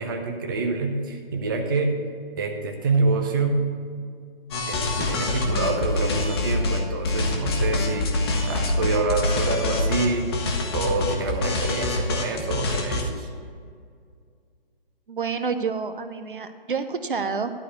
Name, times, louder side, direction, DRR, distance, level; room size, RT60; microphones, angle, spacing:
voice 1, 0.0-2.0 2.4-3.7 4.7-8.1 8.5-10.3 10.7-13.3, right 3 dB, 20° right, 3 dB, 0.7 m, -26 dB
sound 1, 4.5-6.8 7.0-13.0, left 2 dB, 25° left, 1.2 m, -25 dB
voice 2, 15.1-17.5, right 5 dB, 60° right, 9 dB, 0.8 m, -28 dB
12.0 x 4.8 x 8.0 m, 2.1 s
figure-of-eight pair, 140°, 30 cm